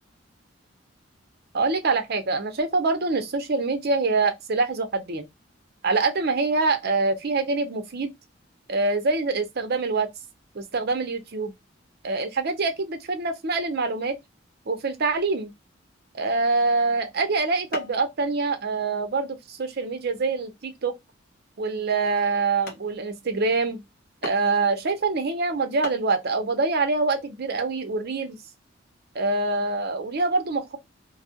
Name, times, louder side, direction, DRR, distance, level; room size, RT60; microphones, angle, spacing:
voice 1, 1.5-5.3 5.8-8.1 8.7-10.1 10.5-11.5 12.0-14.2 14.7-15.5 16.1-20.9 21.6-23.8 24.2-28.4 29.1-30.8, right 3 dB, 55° right, 0.7 m, -25 dB
sound 1, 17.7-18.1 18.5-18.9 19.5-19.6 20.2-20.4 21.0-21.1 21.7-21.8 22.3-22.4 22.7-22.9 24.2-24.6 25.5-25.6 25.8-26.1, equal, 55° left, 1.2 m, -36 dB
2.6 x 2.3 x 2.8 m
head